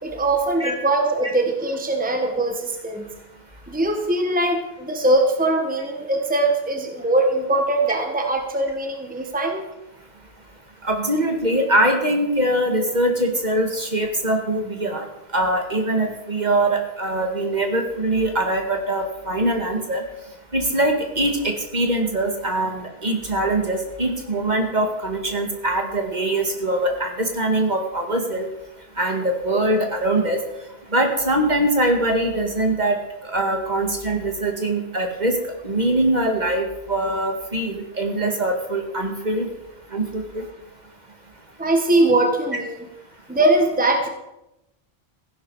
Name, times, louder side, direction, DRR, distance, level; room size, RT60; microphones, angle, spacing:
voice 1, 0.0-3.1 3.7-9.6 41.6-42.8 43.3-44.1, right 2 dB, 10° right, 3 dB, 1.4 m, -21 dB
voice 2, 10.8-15.1 15.3-20.0 20.5-28.5 29.0-30.4 30.9-33.0 33.2-35.3 35.6-39.5 39.9-40.4, right 1 dB, 45° right, 3 dB, 2.0 m, -22 dB
15.5 x 11.0 x 4.8 m, 0.92 s
omnidirectional pair, 1.1 m